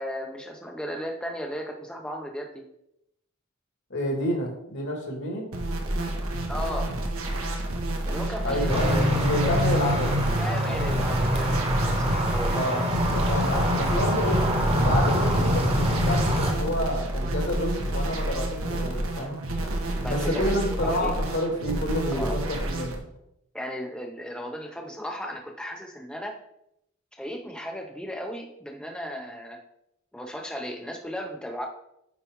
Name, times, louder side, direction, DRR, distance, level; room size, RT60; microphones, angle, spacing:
voice 1, 0.0-2.7 6.5-7.0 8.1-9.0 9.4-9.6 10.4-12.9 20.0-21.1 22.1-22.4 23.5-26.4 27.2-29.6 30.1-31.7, equal, 5° left, 2 dB, 0.5 m, -35 dB
voice 2, 3.9-5.5 8.4-10.1 12.5-14.4 14.7-19.4 20.1-23.0, left 1 dB, 60° left, 2 dB, 1.7 m, -29 dB
sound 1, 5.5-23.0, right 1 dB, 85° right, 1.1 m, -30 dB
sound 2, 8.7-16.5, equal, 30° right, 1.1 m, -24 dB
8.8 x 4.1 x 3.5 m, 0.79 s
head